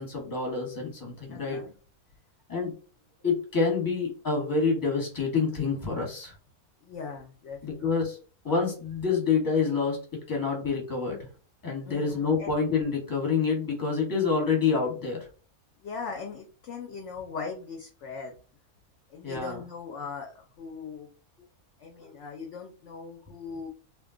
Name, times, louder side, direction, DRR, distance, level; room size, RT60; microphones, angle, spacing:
voice 1, 0.0-1.6 2.5-2.7 3.2-6.3 7.6-8.2 8.4-10.0 10.3-11.3 11.6-15.2 19.2-19.6 22.0-22.1, left 5 dB, 15° left, 0 dB, 0.9 m, -27 dB
voice 2, 1.3-1.7 6.8-7.9 11.9-12.5 15.8-18.4 19.1-21.1 21.8-23.7, left 5 dB, 65° left, 2 dB, 0.8 m, -39 dB
2.6 x 2.2 x 3.6 m, 0.37 s
omnidirectional pair, 1.5 m